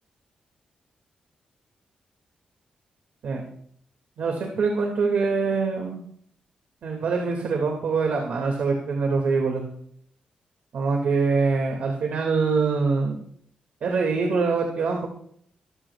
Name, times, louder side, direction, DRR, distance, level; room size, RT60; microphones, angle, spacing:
voice 1, 4.2-6.0 6.8-9.6 10.7-13.2 13.8-15.1, right 4 dB, 75° right, 1 dB, 2.3 m, -24 dB
23.5 x 14.0 x 2.4 m, 0.65 s
cardioid pair, 110°, 2 cm